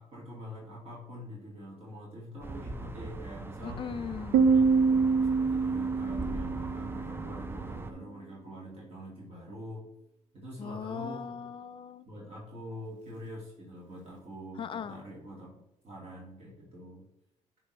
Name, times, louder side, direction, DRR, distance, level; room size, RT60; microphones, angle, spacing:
voice 1, 0.0-3.9 4.4-9.9 10.3-11.5 12.1-17.1, equal, 50° right, -5 dB, 2.2 m, -45 dB
sound 1, 2.4-7.9, right 2 dB, 15° right, 0.5 m, -40 dB
voice 2, 3.6-4.5 10.6-12.1 14.6-15.0, left 7 dB, 40° left, 12 dB, 0.5 m, -39 dB
Piano, 4.3-7.8, right 5 dB, 85° right, 0.5 m, -26 dB
8.7 x 4.5 x 3.2 m, 0.92 s
cardioid pair, 110°, 13 cm